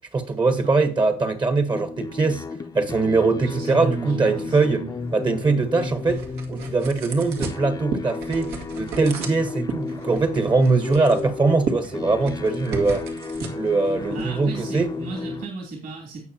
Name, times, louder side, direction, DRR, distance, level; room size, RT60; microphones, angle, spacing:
voice 1, 0.1-2.4 2.7-4.8 5.1-6.2 6.5-13.0 13.5-14.9, right 3 dB, 25° right, 1.1 m, -22 dB
sound 1, 1.7-15.5, left 3 dB, 20° left, 0.7 m, -33 dB
voice 2, 3.4-4.9 14.1-16.2, right 4 dB, 55° right, 3.0 m, -33 dB
sound 2, 5.0-15.2, right 4 dB, 80° right, 1.8 m, -36 dB
16.5 x 5.6 x 2.8 m
cardioid pair, 110°, 17 cm